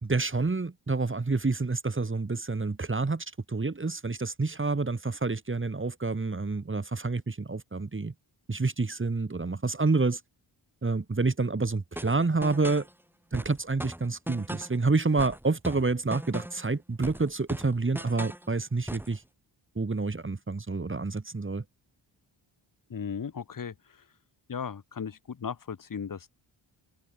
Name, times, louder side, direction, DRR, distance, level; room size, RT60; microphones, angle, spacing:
voice 1, 0.0-8.1 8.5-10.2 10.8-12.9 13.3-19.2 19.7-21.6, right 3 dB, 25° right, 3.2 m, -28 dB
sound 1, 12.0-12.9 13.3-14.8 15.2-16.7 17.0-18.5 18.9-19.2, right 1 dB, 5° right, 7.9 m, -39 dB
voice 2, 22.9-23.7 24.5-26.3, left 6 dB, 40° left, 1.7 m, -36 dB
wide cardioid pair, 130°, 48 cm